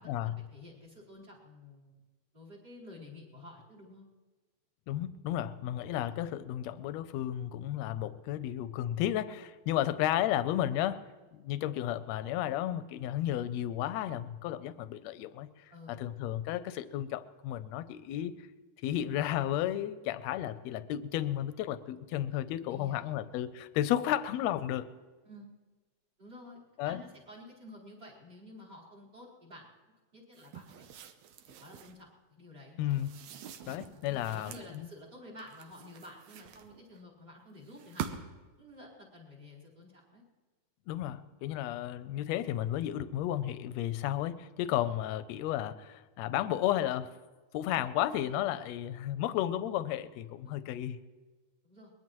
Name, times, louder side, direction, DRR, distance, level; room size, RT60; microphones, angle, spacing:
voice 1, 0.0-2.0 2.3-4.1 15.7-16.0 22.7-23.2 25.2-25.5 26.2-29.7 30.1-30.9 31.6-33.0 33.8-38.3 38.6-40.2 50.4-50.5 51.6-51.9, left 1 dB, 35° right, -2 dB, 4.8 m, -51 dB
voice 2, 4.9-11.0 11.3-15.5 15.9-18.4 18.8-24.9 26.8-27.0 32.8-33.1 33.7-34.9 40.9-47.1 47.5-51.0, left 12 dB, 75° left, 13 dB, 1.8 m, -33 dB
sound 1, 30.3-32.0 32.9-34.8 35.4-37.0 37.7-38.5, right 8 dB, 75° right, 2.1 m, -45 dB
23.0 x 20.5 x 3.1 m, 1.3 s
omnidirectional pair, 3.3 m